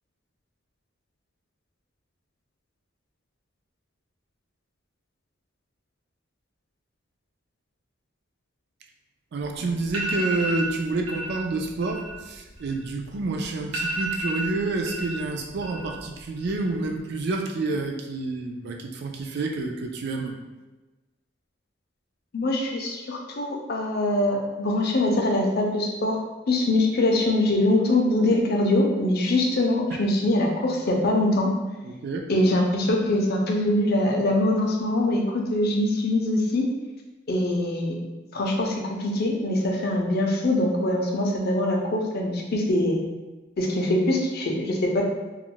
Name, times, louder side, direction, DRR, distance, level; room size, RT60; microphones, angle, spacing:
voice 1, 9.3-20.4 29.9-30.0 31.8-32.3, right 3 dB, 55° right, 2 dB, 0.3 m, -29 dB
sound 1, 9.4-9.5 9.9-10.7 11.1-11.4 11.7-13.2 13.4-13.5 13.7-15.2 15.5-16.1 16.4-16.9, right 2 dB, 85° right, 0.7 m, -31 dB
voice 2, 22.3-31.5 32.3-36.7 37.3-38.0 38.3-43.0 43.6-45.0, left 1 dB, 50° left, 1 dB, 0.5 m, -23 dB
2.3 x 2.1 x 3.7 m, 1.1 s
head